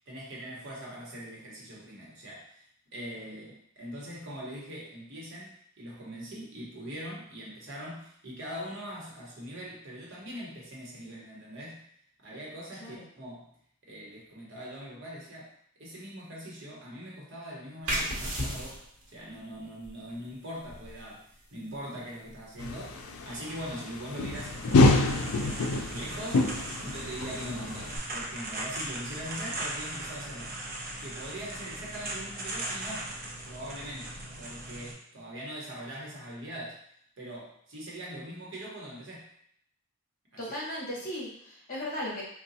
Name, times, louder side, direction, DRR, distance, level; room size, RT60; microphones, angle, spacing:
voice 1, 0.1-2.6 2.9-11.9 12.2-13.5 13.8-15.5 15.8-24.9 25.4-30.6 31.0-33.1 33.4-36.8 37.2-39.3, equal, 60° right, -4 dB, 1.0 m, -42 dB
sound 1, 17.8-29.1, equal, 90° right, 1.0 m, -41 dB
sound 2, 22.6-28.0, left 2 dB, 90° left, 0.4 m, -27 dB
sound 3, 24.3-34.9, right 1 dB, 45° right, 0.6 m, -39 dB
voice 2, 40.4-42.2, left 1 dB, 40° left, -5 dB, 1.1 m, -37 dB
3.9 x 2.3 x 2.7 m, 0.67 s
head